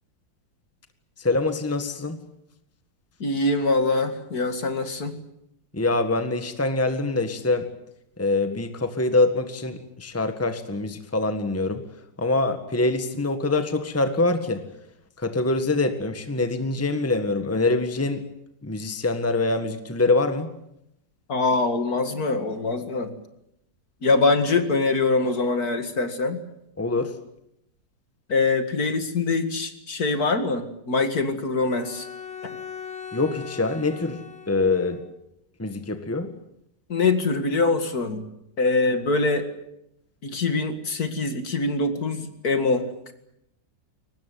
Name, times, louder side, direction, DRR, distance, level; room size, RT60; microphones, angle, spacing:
voice 1, 1.2-2.2 5.7-7.7 8.2-11.8 12.2-14.6 15.2-18.3 18.6-20.5 26.8-27.1 33.1-35.0 35.6-36.3, left 2 dB, 10° left, 8 dB, 1.6 m, -24 dB
voice 2, 3.2-5.2 21.3-23.1 24.0-26.4 28.3-32.1 36.9-38.2 38.6-39.5 40.2-43.1, left 3 dB, 55° left, 8 dB, 2.5 m, -24 dB
Bowed string instrument, 31.6-35.1, left 7 dB, 90° left, 2.6 m, -39 dB
23.5 x 19.5 x 9.4 m, 0.80 s
omnidirectional pair, 2.0 m